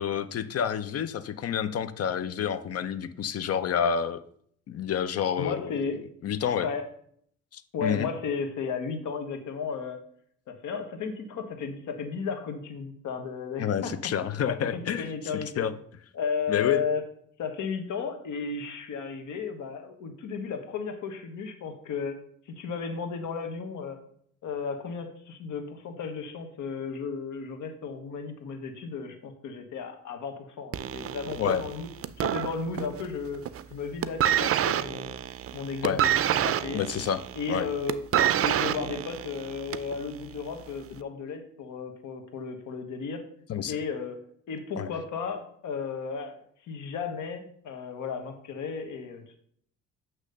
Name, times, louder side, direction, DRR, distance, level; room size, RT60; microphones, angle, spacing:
voice 1, 0.0-4.2 4.7-5.7 6.2-6.7 7.5-8.1 13.6-15.1 15.6-15.7 16.5-16.9 31.4-31.7 35.8-36.0 36.7-37.2 37.5-37.7 43.5-43.8 44.8-44.9, left 8 dB, 55° left, 13 dB, 0.6 m, -28 dB
voice 2, 5.4-6.0 6.6-6.9 7.7-10.0 10.5-13.9 14.5-15.6 16.1-17.0 17.4-22.2 22.5-24.0 24.4-31.9 32.2-35.2 35.5-36.9 37.3-38.0 38.4-43.3 43.7-44.2 44.5-49.4, left 5 dB, 75° left, 6 dB, 1.2 m, -34 dB
sound 1, 30.7-33.1 33.4-33.7 34.0-40.0 40.8-40.9, right 11 dB, 50° right, 0.5 m, -27 dB
8.4 x 3.1 x 6.5 m, 0.64 s
cardioid pair, 90°, 30 cm